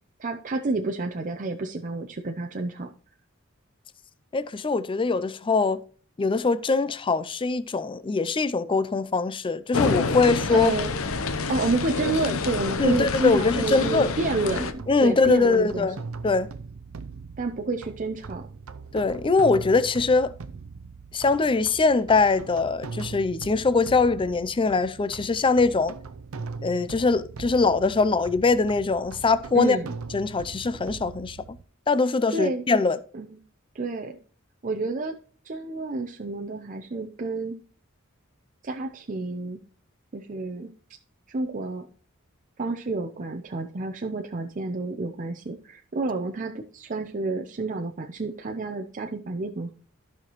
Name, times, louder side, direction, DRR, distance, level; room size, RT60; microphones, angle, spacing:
voice 1, 0.2-2.9 10.5-10.9 11.5-15.9 17.4-18.5 29.5-29.9 32.3-32.6 33.1-33.4 33.7-34.2 34.6-35.2 35.4-37.6 38.6-39.6 40.1-40.7 41.3-41.9 42.6-49.7, right 3 dB, 40° right, 0.6 m, -29 dB
voice 2, 4.3-5.8 6.2-10.7 12.8-14.1 14.9-16.5 18.9-20.3 21.1-25.9 26.6-29.8 30.1-31.4 31.9-33.0, left 4 dB, 25° left, 0.4 m, -22 dB
sound 1, 9.7-14.7, left 4 dB, 75° left, 0.7 m, -28 dB
sound 2, 14.4-31.6, right 4 dB, 80° right, 0.6 m, -40 dB
14.0 x 5.8 x 3.0 m
head